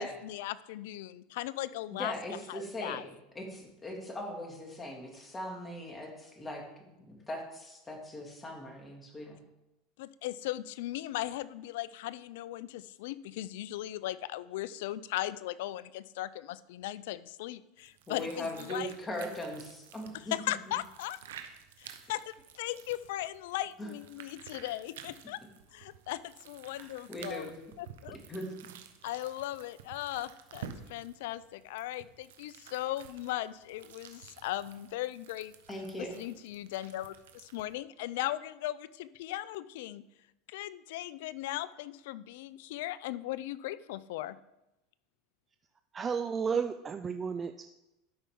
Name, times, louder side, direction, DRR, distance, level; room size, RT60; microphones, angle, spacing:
voice 1, 0.0-3.0 10.0-18.9 20.1-21.2 21.8-25.4 25.7-27.5 27.8-28.2 29.0-35.5 36.0-40.0 40.5-44.4, left 14 dB, 75° left, 17 dB, 0.4 m, -38 dB
voice 2, 1.9-3.0 3.3-9.4 18.1-20.3 23.8-23.9 26.8-27.5 28.3-28.7 35.7-36.2, equal, 20° left, 1 dB, 2.3 m, -40 dB
sound 1, 17.8-37.7, right 8 dB, 85° right, 0.8 m, -52 dB
voice 3, 45.9-47.7, right 6 dB, 25° right, 8 dB, 0.4 m, -32 dB
12.0 x 5.5 x 3.7 m, 0.93 s
hypercardioid pair, 100°, 0 cm